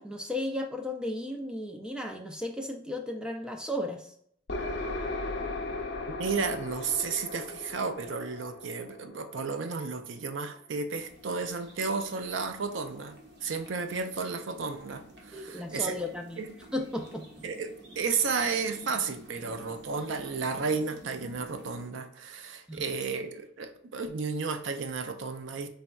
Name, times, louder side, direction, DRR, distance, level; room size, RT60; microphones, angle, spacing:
voice 1, 0.0-4.1 15.3-16.4 16.7-17.3 22.7-22.9, left 1 dB, 5° right, 3 dB, 0.3 m, -34 dB
sound 1, 4.5-10.1, left 2 dB, 65° left, 0.6 m, -37 dB
voice 2, 6.2-13.1 13.4-16.0 16.4-16.5 17.4-25.7, right 5 dB, 80° right, 8 dB, 0.5 m, -33 dB
sound 2, 10.9-21.9, right 1 dB, 60° right, 0.8 m, -50 dB
4.0 x 3.3 x 2.3 m, 0.66 s
head